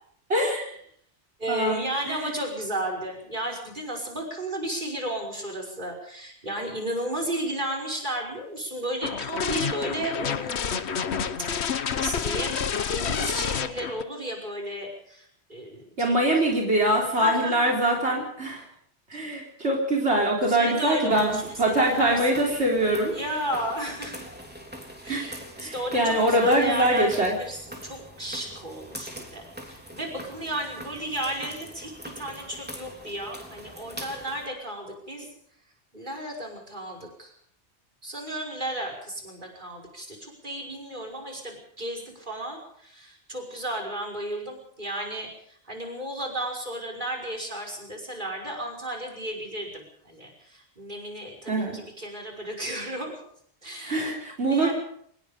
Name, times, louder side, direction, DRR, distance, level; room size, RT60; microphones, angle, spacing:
voice 1, 0.3-0.7 1.5-2.3 16.0-18.6 19.1-23.1 25.1-25.2 25.6-27.4 51.5-51.8 53.8-54.7, right 1 dB, 85° right, -1 dB, 4.2 m, -23 dB
voice 2, 1.4-11.0 11.4-11.5 11.9-16.2 17.2-17.7 19.1-19.4 20.5-22.2 23.1-24.3 25.0-35.3 35.9-37.3 38.0-53.2 53.6-54.0 54.5-54.7, right 1 dB, 50° right, 2 dB, 5.9 m, -34 dB
sound 1, 9.0-14.0, left 7 dB, 80° left, 1.3 m, -29 dB
sound 2, 21.1-34.5, equal, 10° right, 3.6 m, -43 dB
25.0 x 20.5 x 5.2 m, 0.66 s
omnidirectional pair, 1.1 m